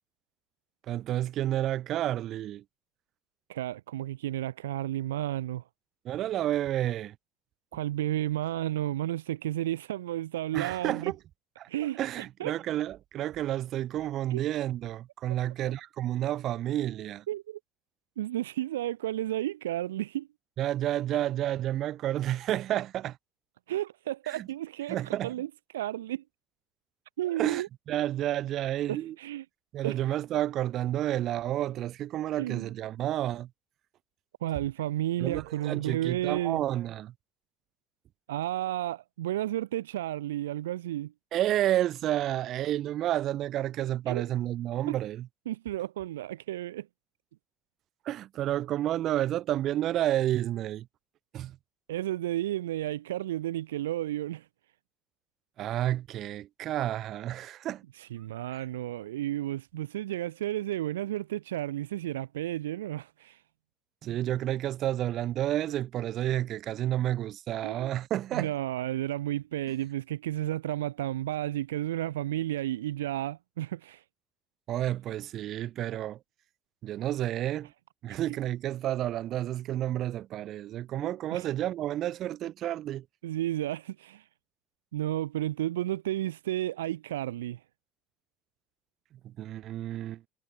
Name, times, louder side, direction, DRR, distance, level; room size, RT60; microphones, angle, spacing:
voice 1, 0.9-2.6 6.0-7.2 10.5-11.2 11.6-11.7 12.0-17.2 20.6-23.2 24.3-24.5 24.9-25.3 27.4-29.2 29.7-33.5 35.2-37.1 41.3-45.3 48.0-50.9 51.3-51.6 55.6-57.8 58.5-58.6 64.0-68.5 74.7-76.2 76.8-77.7 78.0-83.1 89.2-90.2, right 13 dB, 50° right, 5.6 m, -30 dB
voice 2, 3.5-5.6 7.7-11.1 11.7-12.0 12.4-12.5 14.3-14.4 17.3-17.6 18.2-20.3 23.7-25.5 25.7-26.2 27.2-27.7 28.9-29.4 29.8-30.0 32.4-32.7 34.4-36.6 38.3-41.1 44.1-44.3 44.9-45.0 45.5-46.9 51.9-54.4 58.0-63.4 67.6-67.9 68.3-74.0 78.1-78.2 81.0-81.5 83.2-84.2 84.9-87.6, right 13 dB, 80° right, 4.7 m, -32 dB
hypercardioid pair, 65°, 0 cm